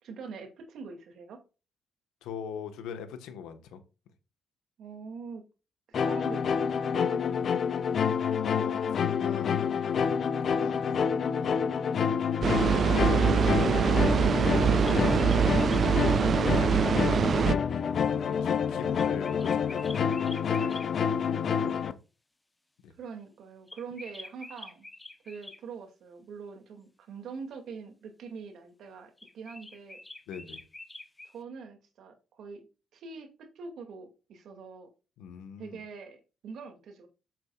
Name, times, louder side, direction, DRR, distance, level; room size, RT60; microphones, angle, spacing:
voice 1, 0.0-1.4 4.8-5.4 5.9-7.7 17.9-18.4 23.0-24.9 25.2-30.0 31.2-32.7 32.9-34.9 35.6-37.1, right 5 dB, 70° right, 2.5 m, -44 dB
voice 2, 2.2-3.8 8.4-11.1 12.6-16.0 18.1-22.0 22.8-22.9 30.3-30.6 35.2-35.8, left 7 dB, 90° left, 1.4 m, -42 dB
sound 1, 5.9-21.9, left 7 dB, 55° left, 0.7 m, -28 dB
sound 2, 12.4-17.5, right 7 dB, 50° right, 0.4 m, -24 dB
sound 3, 14.4-15.9 18.9-20.9 23.7-25.6 29.2-31.4, left 2 dB, 15° left, 1.0 m, -46 dB
7.8 x 7.6 x 2.5 m
cardioid pair, 90°, 0 cm